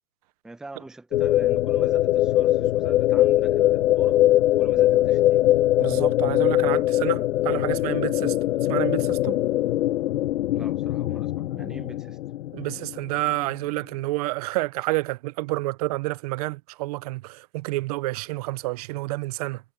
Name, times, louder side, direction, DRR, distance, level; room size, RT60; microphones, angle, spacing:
voice 1, 0.4-4.2 4.6-5.4 10.5-12.2, right 2 dB, ahead, 0.8 m, -43 dB
sound 1, 1.1-13.3, left 14 dB, 70° left, 0.6 m, -22 dB
voice 2, 5.8-8.3 8.7-9.4 12.5-19.6, right 20 dB, 30° right, 0.5 m, -29 dB
hypercardioid pair, 145°, 39 cm